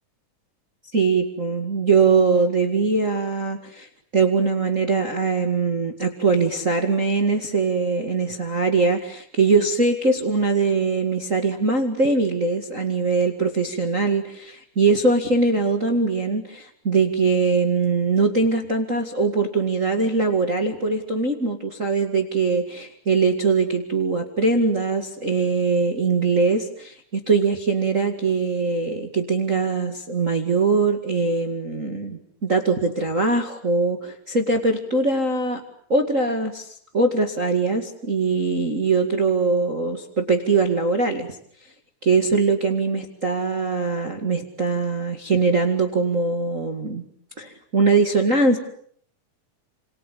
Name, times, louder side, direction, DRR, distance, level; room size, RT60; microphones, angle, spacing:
voice 1, 0.9-35.6 35.9-36.7 36.9-41.4 42.0-47.0 47.4-48.6, right 4 dB, 25° right, 4 dB, 2.0 m, -22 dB
27.5 x 27.5 x 7.1 m, 0.62 s
omnidirectional pair, 3.9 m